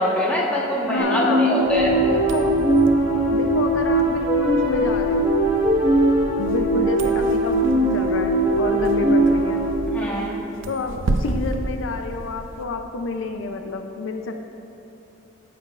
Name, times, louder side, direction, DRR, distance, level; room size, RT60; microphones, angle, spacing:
voice 1, 0.0-1.9 9.9-10.4, left 1 dB, 5° left, -6 dB, 1.3 m, -23 dB
voice 2, 0.9-1.7 2.0-2.6 3.3-5.4 6.3-9.6 10.7-14.4, left 3 dB, 80° left, 5 dB, 0.5 m, -29 dB
sound 1, 1.0-9.7, right 1 dB, 25° right, 1.3 m, -20 dB
sound 2, 1.6-9.9, equal, 50° left, 1.6 m, -36 dB
sound 3, 2.1-12.6, right 2 dB, 80° right, 0.6 m, -33 dB
15.0 x 6.9 x 2.5 m, 2.9 s
head